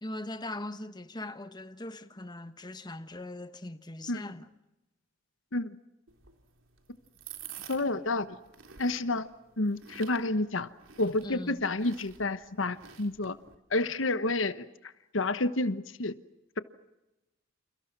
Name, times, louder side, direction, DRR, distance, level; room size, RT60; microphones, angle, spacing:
voice 1, 0.0-4.5 11.2-11.6, left 1 dB, 20° left, 1.2 m, -40 dB
sound 1, 6.1-13.6, right 8 dB, 85° right, 3.7 m, -50 dB
voice 2, 7.7-8.4 8.8-9.3 9.6-10.7 11.0-13.4 13.7-14.7 15.1-16.1, left 2 dB, 75° left, 1.2 m, -29 dB
29.5 x 29.0 x 6.1 m
head